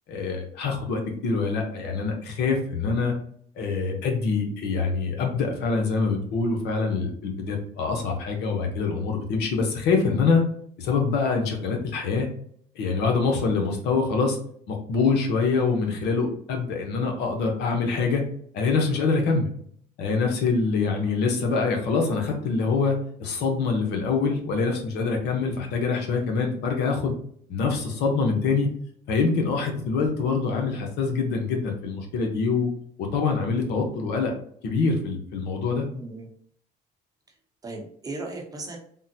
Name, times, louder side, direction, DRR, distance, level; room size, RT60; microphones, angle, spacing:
voice 1, 0.1-3.1 3.6-10.4 10.8-12.3 12.8-14.4 14.7-18.2 18.5-19.5 20.0-22.9 23.2-27.1 27.5-28.7 29.1-32.7 33.1-34.3 34.6-35.9, left 4 dB, 80° left, 2 dB, 0.8 m, -25 dB
voice 2, 35.9-36.3 37.6-38.8, right 2 dB, 20° right, 0 dB, 0.8 m, -36 dB
3.6 x 2.1 x 2.7 m, 0.62 s
cardioid pair, 110°, 17 cm